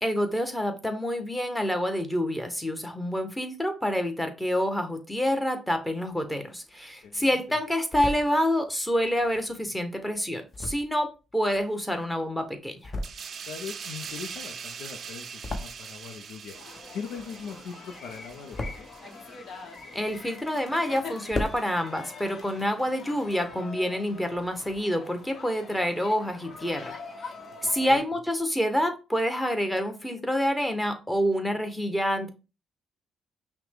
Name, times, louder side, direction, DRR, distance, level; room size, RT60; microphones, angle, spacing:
voice 1, 0.0-12.9 19.9-27.0 27.6-32.3, equal, 10° left, 1.0 m, -27 dB
sound 1, 6.3-7.1 7.5-8.3 9.0-12.2 12.6-13.5 13.7-16.2 16.4-17.7 18.0-19.0 19.5-20.6 20.9-21.0 21.2-21.6, left 1 dB, 35° left, 0.9 m, -38 dB
voice 2, 7.0-7.6 13.5-16.6 16.9-18.9 27.8-28.0, left 6 dB, 85° left, 0.6 m, -40 dB
sound 2, 13.0-20.2 20.6-20.8, right 6 dB, 55° right, 0.4 m, -42 dB
sound 3, 16.5-28.0, left 4 dB, 55° left, 1.2 m, -44 dB
5.8 x 2.2 x 3.6 m
cardioid pair, 90°, 0 cm